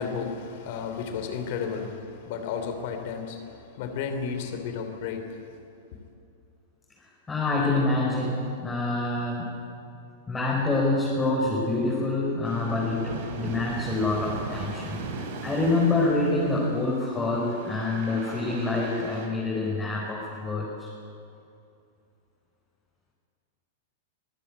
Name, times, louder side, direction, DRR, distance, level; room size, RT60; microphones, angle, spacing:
voice 1, 0.0-5.6, left 6 dB, 55° left, 7 dB, 3.2 m, -33 dB
voice 2, 7.3-9.6 10.3-20.9, left 2 dB, 15° left, -4 dB, 5.1 m, -26 dB
sound 1, 12.4-19.3, right 4 dB, 55° right, 3.6 m, -38 dB
24.5 x 15.0 x 8.7 m, 2.5 s
figure-of-eight pair, 100°, 0 cm